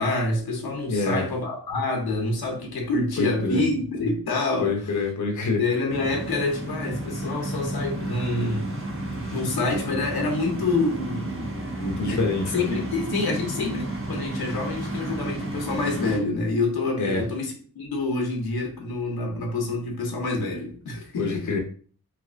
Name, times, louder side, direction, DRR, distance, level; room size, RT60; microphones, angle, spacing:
voice 1, 0.0-5.0 5.6-8.7 9.3-11.5 12.1-12.3 12.5-21.5, left 3 dB, 80° left, 0.9 m, -27 dB
voice 2, 0.9-1.2 3.2-3.6 4.6-5.6 11.8-12.7 17.0-17.2 21.2-21.6, left 3 dB, 50° left, 0.8 m, -26 dB
sound 1, 5.9-16.2, right 1 dB, 35° right, 1.2 m, -32 dB
3.2 x 2.9 x 2.5 m
cardioid pair, 65°, 37 cm